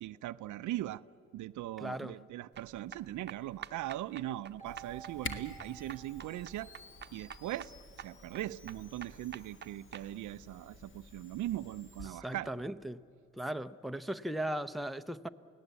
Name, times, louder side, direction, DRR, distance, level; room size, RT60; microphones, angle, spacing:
voice 1, 0.0-1.0 1.3-6.7 7.1-12.5, right 14 dB, 75° right, 0.6 m, -40 dB
voice 2, 1.8-2.2 12.1-13.0 13.3-15.3, right 1 dB, ahead, 0.6 m, -37 dB
sound 1, 2.5-10.1, right 7 dB, 35° right, 0.9 m, -49 dB
Keyboard (musical), 4.6-7.2, right 10 dB, 25° left, 3.5 m, -53 dB
Camera, 4.7-12.1, left 3 dB, 40° left, 1.8 m, -50 dB
28.5 x 18.0 x 8.3 m
cardioid pair, 90°, 30 cm